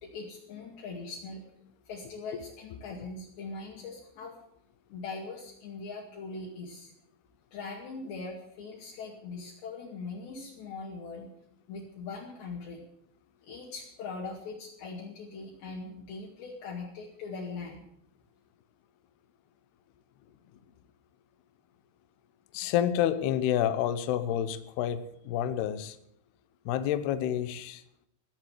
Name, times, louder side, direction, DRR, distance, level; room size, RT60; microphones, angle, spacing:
voice 1, 0.0-1.4 1.9-4.4 4.9-6.9 7.5-11.3 11.7-12.8 13.4-17.8, left 4 dB, 60° left, -3 dB, 4.2 m, -41 dB
voice 2, 22.5-26.0 26.7-27.8, left 10 dB, 85° left, 12 dB, 2.3 m, -29 dB
18.0 x 7.8 x 9.3 m, 0.74 s
omnidirectional pair, 6.0 m